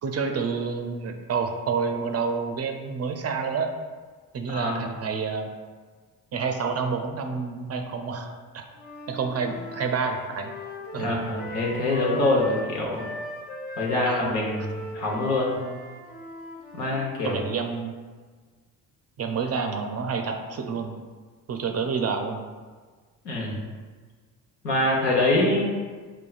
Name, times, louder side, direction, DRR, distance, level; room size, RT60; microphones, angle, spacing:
voice 1, 0.0-3.7 4.3-5.5 6.3-8.3 8.5-8.6 9.1-10.5 10.9-11.2 14.0-14.2 17.2-17.9 19.2-21.0 21.5-22.5, right 5 dB, 35° right, 4 dB, 0.4 m, -28 dB
voice 2, 4.5-4.9 11.0-13.0 13.8-15.6 16.7-17.4 23.2-23.7 24.6-25.7, left 2 dB, 80° left, -3 dB, 1.0 m, -25 dB
Wind instrument woodwind instrument, 8.7-17.1, left 1 dB, 20° left, 0.9 m, -38 dB
6.1 x 2.3 x 2.4 m, 1.5 s
hypercardioid pair, 55°, 47 cm